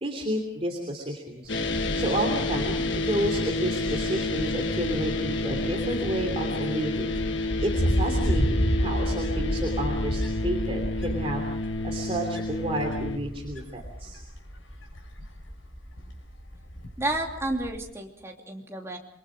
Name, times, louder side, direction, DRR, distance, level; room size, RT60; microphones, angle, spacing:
voice 1, 0.0-1.5 2.0-7.2 7.6-11.4 11.8-14.2, right 1 dB, 30° right, 1 dB, 3.1 m, -31 dB
Wind, 1.5-17.8, equal, 85° left, 6.1 m, -32 dB
sound 1, 1.5-13.2, left 2 dB, 65° left, 1.4 m, -30 dB
voice 2, 17.0-19.0, right 2 dB, 15° right, 1 dB, 3.0 m, -31 dB
27.5 x 23.0 x 5.1 m, 0.69 s
head